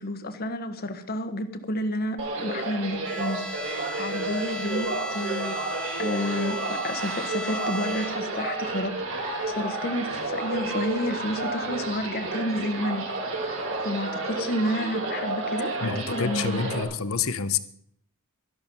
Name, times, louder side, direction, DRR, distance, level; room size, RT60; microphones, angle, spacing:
voice 1, 0.0-3.5 4.0-5.6 6.0-13.0 13.4-16.9, left 1 dB, 45° left, 9 dB, 1.3 m, -31 dB
sound 1, 2.2-16.8, right 2 dB, 65° right, 4.4 m, -31 dB
Bowed string instrument, 3.0-8.5, left 1 dB, 5° left, 0.4 m, -37 dB
voice 2, 15.8-17.6, left 6 dB, 70° left, 13 dB, 0.9 m, -28 dB
13.0 x 11.5 x 5.5 m, 0.67 s
head